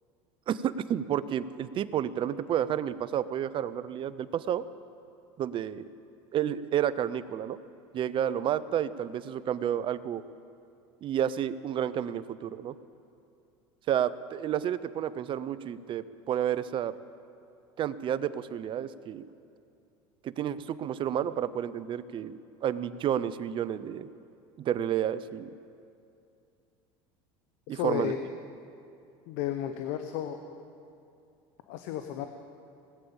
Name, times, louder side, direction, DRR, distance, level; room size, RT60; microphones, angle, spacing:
voice 1, 0.5-4.6 5.4-5.8 6.3-7.6 7.9-10.2 11.0-12.7 13.9-16.9 17.8-19.2 20.2-24.1 24.6-25.5 27.7-28.1, right 10 dB, 40° right, 16 dB, 0.6 m, -30 dB
voice 2, 27.7-28.2 29.3-30.4 31.7-32.3, left 11 dB, 70° left, 8 dB, 0.8 m, -33 dB
18.0 x 8.7 x 7.0 m, 2.6 s
supercardioid pair, 100°, 13 cm